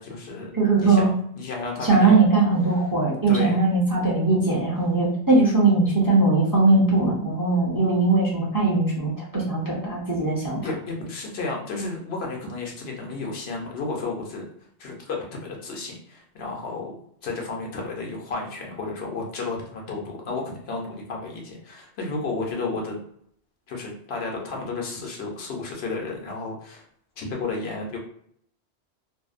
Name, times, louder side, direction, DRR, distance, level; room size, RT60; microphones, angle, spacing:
voice 1, 0.0-0.5 0.8-2.1 3.3-3.6 10.6-14.4 14.8-16.9 17.2-23.0 23.7-26.8 27.2-28.0, left 3 dB, 70° left, 0 dB, 0.9 m, -32 dB
voice 2, 0.5-1.1 1.8-10.6, right 3 dB, 25° right, -5 dB, 0.5 m, -20 dB
2.6 x 2.0 x 2.4 m, 0.68 s
omnidirectional pair, 1.1 m